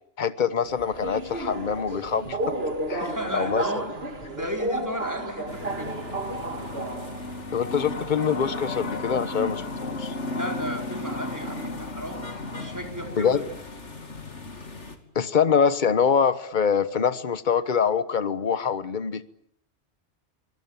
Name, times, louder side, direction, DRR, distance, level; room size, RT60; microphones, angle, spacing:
voice 1, 0.2-2.4 2.9-3.6 7.5-10.1 13.2-13.4 15.1-19.2, left 7 dB, 40° left, 14 dB, 1.3 m, -24 dB
Subway metro underground, 0.6-7.4, right 2 dB, 55° right, 2.5 m, -32 dB
voice 2, 3.0-6.0 10.3-12.3 12.6-13.4, equal, 15° right, 3 dB, 4.6 m, -34 dB
sound 1, 5.5-15.0, left 2 dB, 75° left, 3.1 m, -34 dB
25.5 x 22.5 x 9.1 m, 0.72 s
omnidirectional pair, 1.2 m